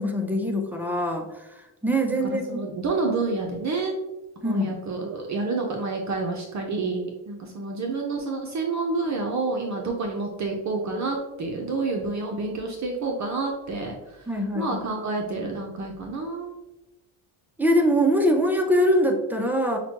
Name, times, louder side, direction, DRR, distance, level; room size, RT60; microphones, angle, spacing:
voice 1, 0.0-1.4 1.8-2.7 4.4-4.8 14.3-14.8 17.6-19.8, equal, 5° right, 3 dB, 0.4 m, -23 dB
voice 2, 2.1-4.0 4.4-13.9 14.5-16.5, right 3 dB, 45° right, 1 dB, 0.7 m, -29 dB
5.8 x 2.2 x 2.8 m, 0.97 s
cardioid pair, 100°, 42 cm